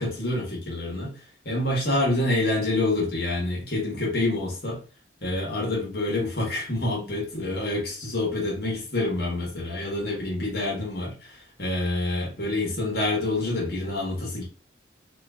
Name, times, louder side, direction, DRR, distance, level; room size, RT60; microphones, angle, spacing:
voice 1, 0.0-4.8 5.2-14.4, left 2 dB, 55° left, -3 dB, 1.3 m, -27 dB
3.0 x 2.3 x 3.6 m, 0.35 s
head